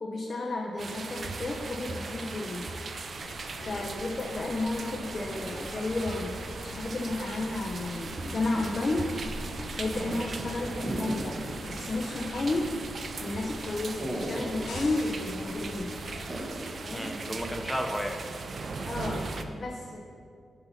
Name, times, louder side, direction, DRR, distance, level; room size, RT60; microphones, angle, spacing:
voice 1, 0.0-2.7 3.6-9.2 9.8-12.7 13.2-16.0 16.8-17.1 18.8-20.0, left 2 dB, 50° left, -1 dB, 0.7 m, -32 dB
sound 1, 0.8-19.4, right 3 dB, 60° right, 0.4 m, -39 dB
sound 2, 3.1-16.3, left 1 dB, 85° left, 1.3 m, -43 dB
sound 3, 10.8-11.7 12.0-12.1 14.0-14.8 16.3-16.8, right 1 dB, 20° right, 1.4 m, -35 dB
voice 2, 16.9-18.2, equal, 5° left, 4 dB, 0.7 m, -34 dB
7.9 x 2.9 x 5.6 m, 2.3 s
supercardioid pair, 50°, 0 cm